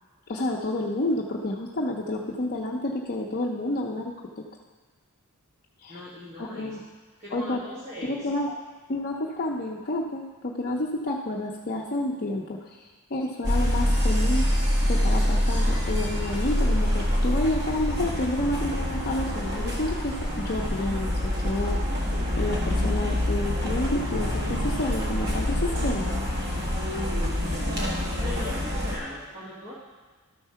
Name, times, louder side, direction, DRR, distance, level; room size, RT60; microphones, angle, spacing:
voice 1, 0.3-4.4 5.8-6.0 6.4-6.8 7.3-7.6 8.0-8.5 8.9-14.5 14.9-22.0 22.4-26.2, left 1 dB, 45° left, -2 dB, 0.7 m, -30 dB
voice 2, 5.9-6.8 7.2-8.3 28.2-29.7, left 1 dB, 30° right, -8 dB, 1.7 m, -39 dB
sound 1, 13.4-29.0, left 1 dB, 50° right, 1.7 m, -26 dB
12.5 x 4.6 x 5.7 m, 1.4 s
head